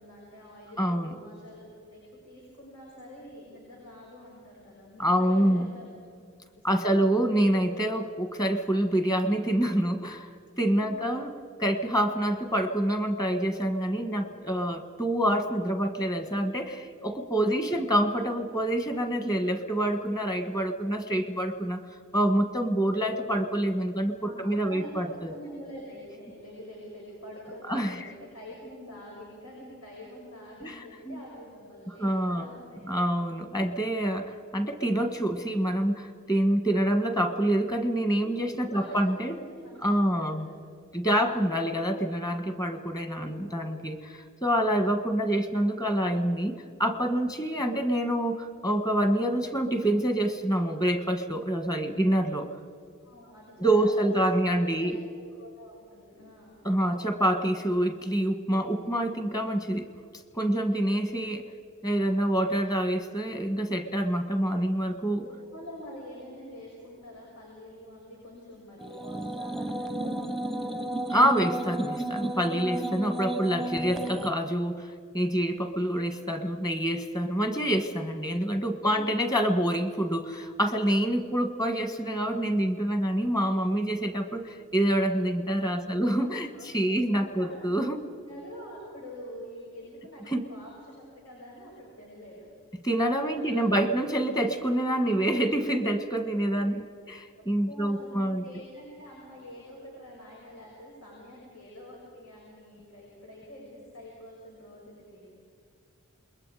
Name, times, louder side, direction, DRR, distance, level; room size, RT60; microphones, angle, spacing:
voice 1, 0.0-5.9 6.6-7.2 10.8-11.1 17.5-17.9 24.2-33.0 38.2-38.3 38.7-40.6 43.2-43.6 53.0-54.4 54.7-56.6 65.1-70.9 78.8-79.1 85.5-86.2 86.5-87.5 88.2-92.5 93.3-93.7 97.3-105.3, equal, 85° left, -4 dB, 6.7 m, -46 dB
voice 2, 0.8-1.1 5.0-5.7 6.6-10.3 10.6-11.3 11.6-21.8 22.1-25.4 27.7-28.0 30.6-31.2 31.9-32.5 32.9-39.4 39.8-40.5 40.9-52.5 53.6-55.0 56.6-59.9 60.3-61.4 61.8-65.2 71.1-88.0 90.3-90.5 92.8-98.4, right 1 dB, 15° left, 8 dB, 1.4 m, -27 dB
sound 1, 68.8-74.3, right 1 dB, ahead, 0.8 m, -33 dB
28.0 x 22.0 x 4.9 m, 2.2 s
head